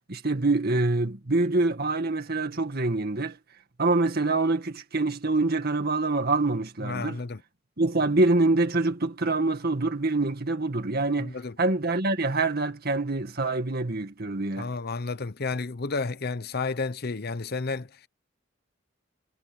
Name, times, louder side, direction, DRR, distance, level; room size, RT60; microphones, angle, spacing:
voice 1, 0.1-3.4 3.8-7.2 7.8-14.7, right 2 dB, 55° right, 2.1 m, -25 dB
voice 2, 6.8-7.4 11.2-11.6 14.6-18.1, left 4 dB, 55° left, 0.8 m, -31 dB
head